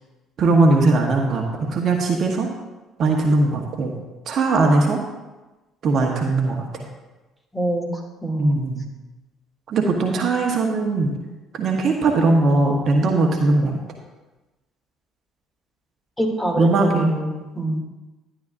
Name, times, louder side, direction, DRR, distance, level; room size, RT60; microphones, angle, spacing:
voice 1, 0.4-2.5 3.0-3.9 4.3-5.0 5.8-6.9 8.4-8.9 9.7-11.1 11.5-13.8 16.6-17.1, right 3 dB, 50° right, 2 dB, 1.2 m, -19 dB
voice 2, 7.5-7.9 8.2-8.5 16.2-17.8, right 1 dB, 10° left, 0 dB, 2.7 m, -24 dB
12.0 x 10.0 x 2.6 m, 1.1 s
figure-of-eight pair, 50°, 0 cm